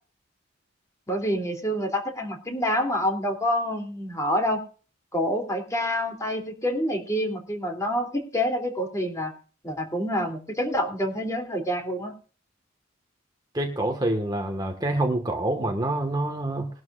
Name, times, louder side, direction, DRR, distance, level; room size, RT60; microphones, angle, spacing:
voice 1, 1.1-4.6 5.1-9.3 9.6-12.1, equal, 15° left, 3 dB, 3.1 m, -27 dB
voice 2, 13.5-16.7, right 1 dB, 20° right, 3 dB, 1.6 m, -26 dB
21.0 x 12.0 x 2.5 m, 0.39 s
head